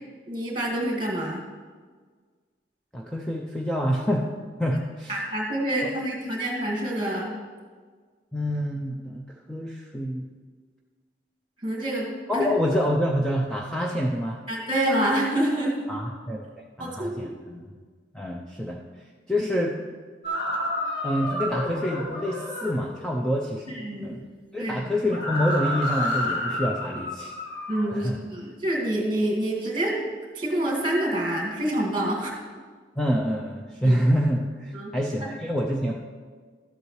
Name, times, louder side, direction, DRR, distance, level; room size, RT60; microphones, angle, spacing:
voice 1, 0.3-1.4 5.1-7.3 11.6-12.5 14.5-15.9 16.8-17.4 23.7-24.2 24.6-24.8 27.7-30.0 30.3-32.3 33.8-34.0 34.7-34.9 35.2-35.4, right 1 dB, 25° right, -1 dB, 1.9 m, -27 dB
voice 2, 2.9-4.3 4.6-5.1 5.8-5.9 8.3-10.3 12.3-14.4 15.9-16.5 16.8-17.7 18.1-18.8 19.3-19.7 21.0-24.3 24.5-27.3 27.9-28.2 33.0-35.9, equal, 5° left, -2 dB, 0.5 m, -27 dB
sound 1, 20.2-22.8 25.1-28.0, left 1 dB, 70° left, 2.1 m, -30 dB
12.5 x 8.0 x 3.2 m, 1.5 s
head